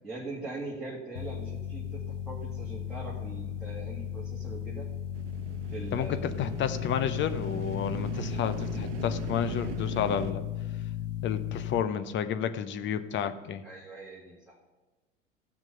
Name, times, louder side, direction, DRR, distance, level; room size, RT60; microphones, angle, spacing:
voice 1, 0.0-4.9 5.7-6.5 13.6-14.6, right 2 dB, ahead, -5 dB, 1.9 m, -41 dB
sound 1, 1.2-11.8, left 10 dB, 80° left, 0.7 m, -35 dB
sound 2, 5.1-10.3, right 6 dB, 65° right, 0.9 m, -40 dB
voice 2, 5.9-10.4 11.2-13.6, left 8 dB, 30° left, 11 dB, 0.8 m, -31 dB
14.5 x 6.0 x 5.4 m, 1.2 s
figure-of-eight pair, 80°, 37 cm